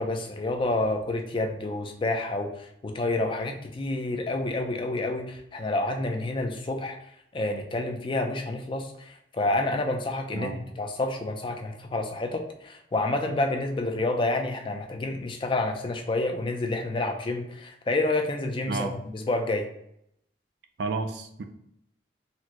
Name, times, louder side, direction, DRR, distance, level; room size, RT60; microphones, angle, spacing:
voice 1, 0.0-7.0 7.3-10.5 10.8-19.7, left 2 dB, 25° left, 4 dB, 0.3 m, -29 dB
voice 2, 18.7-19.0 20.8-21.4, right 4 dB, 65° right, 8 dB, 0.4 m, -31 dB
4.1 x 2.0 x 2.9 m, 0.74 s
head